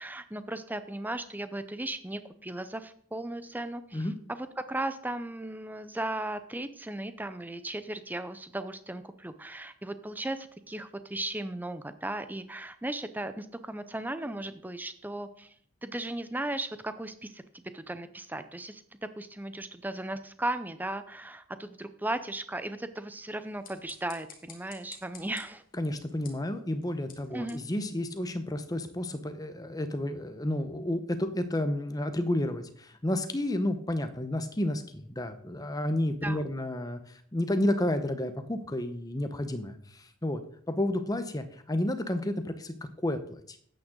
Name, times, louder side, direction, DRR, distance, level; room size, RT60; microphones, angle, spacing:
voice 1, 0.0-15.5 15.8-25.6 27.3-27.6 36.2-36.4, right 1 dB, 10° right, 11 dB, 0.5 m, -36 dB
sound 1, 23.4-28.7, left 6 dB, 40° left, 1.9 m, -54 dB
voice 2, 25.8-40.4 40.7-43.6, left 1 dB, 15° left, 9 dB, 0.8 m, -31 dB
12.5 x 9.0 x 3.8 m, 0.62 s
head